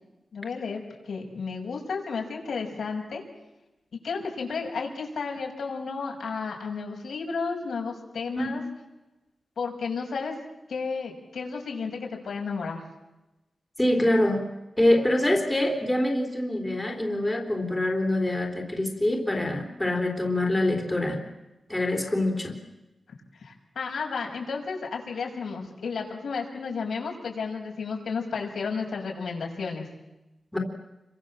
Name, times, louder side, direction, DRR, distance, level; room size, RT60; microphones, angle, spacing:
voice 1, 0.3-3.2 4.0-8.6 9.6-10.4 10.7-12.8 23.4-29.9, left 5 dB, 85° left, 1 dB, 6.3 m, -32 dB
voice 2, 13.8-14.4 14.8-21.2 21.7-22.6 30.5-30.6, left 1 dB, 10° left, 2 dB, 3.8 m, -25 dB
29.5 x 23.5 x 7.5 m, 1.0 s
wide cardioid pair, 155°, 0 cm